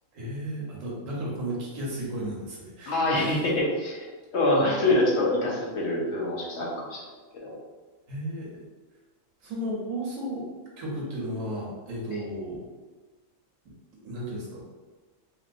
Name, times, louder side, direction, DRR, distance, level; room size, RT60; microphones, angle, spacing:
voice 1, 0.1-3.4 8.1-8.5 9.4-10.4 10.8-12.7 14.0-14.7, right 1 dB, 80° right, -4 dB, 1.2 m, -34 dB
voice 2, 2.9-7.0 7.3-7.5 12.1-12.2, left 1 dB, 60° left, -3 dB, 1.0 m, -25 dB
3.0 x 2.8 x 2.5 m, 1.3 s
omnidirectional pair, 1.4 m